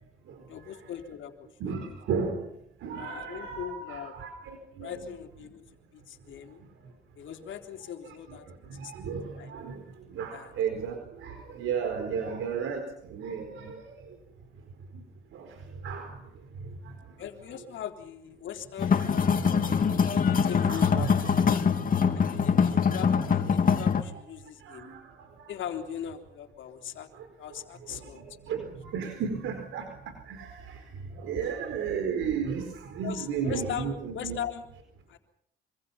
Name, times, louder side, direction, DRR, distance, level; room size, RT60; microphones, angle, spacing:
voice 1, 0.5-1.9 3.0-4.2 4.8-5.6 5.9-6.6 7.2-8.5 8.8-9.1 9.3-9.5 10.3-10.5 12.2-12.3 17.2-19.2 20.0-21.7 22.1-24.9 25.5-27.1 27.4-28.2 31.4-31.5 33.0-34.7 35.1-35.2, left 9 dB, 75° left, 5 dB, 3.6 m, -40 dB
voice 2, 1.6-2.4 2.8-4.9 8.8-9.8 10.1-12.8 13.1-13.7 15.3-15.4 15.8-16.1 20.7-21.1 24.7-25.0 28.5-28.6 28.9-29.9 30.3-30.5 31.2-32.6 32.9-34.4, right 6 dB, 85° right, 6 dB, 4.5 m, -33 dB
sound 1, 18.8-24.0, left 6 dB, 45° left, 3.1 m, -24 dB
26.0 x 26.0 x 5.8 m, 0.69 s
cardioid pair, 90°, 20 cm